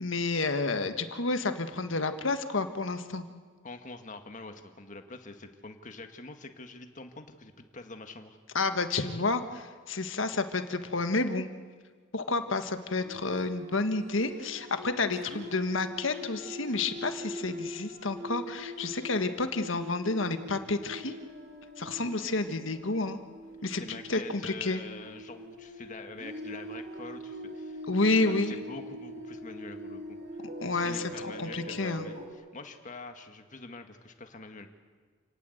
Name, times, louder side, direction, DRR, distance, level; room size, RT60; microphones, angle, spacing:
voice 1, 0.0-3.2 8.5-11.5 12.1-21.1 21.8-23.2 23.6-24.8 27.9-28.5 30.6-32.1, left 3 dB, 85° left, 8 dB, 1.6 m, -30 dB
voice 2, 3.6-8.4 23.8-30.2 30.6-34.7, left 3 dB, 40° left, 6 dB, 1.9 m, -45 dB
sound 1, 13.0-32.3, equal, 55° right, 3.4 m, -43 dB
28.5 x 18.5 x 8.0 m, 1.5 s
head